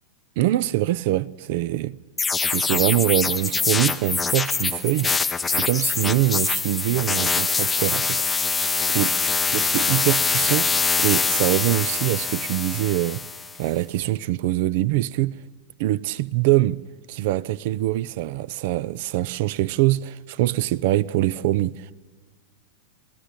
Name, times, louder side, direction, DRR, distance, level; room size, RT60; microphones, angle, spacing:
voice 1, 0.4-2.0 2.4-5.1 5.4-8.2 8.9-9.2 9.5-10.7 11.0-13.2 13.6-15.4 15.8-16.8 17.1-21.9, right 15 dB, 50° right, 0.6 m, -23 dB
sound 1, 2.2-13.6, left 4 dB, 15° left, 0.7 m, -24 dB
23.0 x 15.5 x 9.9 m
figure-of-eight pair, 90°, 0 cm